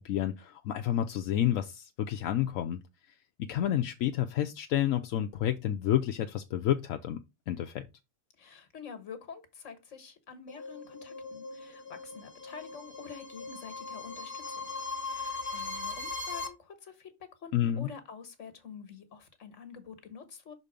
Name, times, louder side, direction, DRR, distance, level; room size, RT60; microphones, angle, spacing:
voice 1, 0.0-2.8 3.4-7.2 7.5-7.9 17.5-17.9, left 11 dB, 85° left, 1.0 m, -30 dB
voice 2, 8.4-14.7 15.1-20.5, left 6 dB, 70° left, 1.7 m, -47 dB
sound 1, 10.5-16.5, left 3 dB, 40° left, 1.3 m, -39 dB
6.0 x 4.1 x 5.0 m
omnidirectional pair, 1.3 m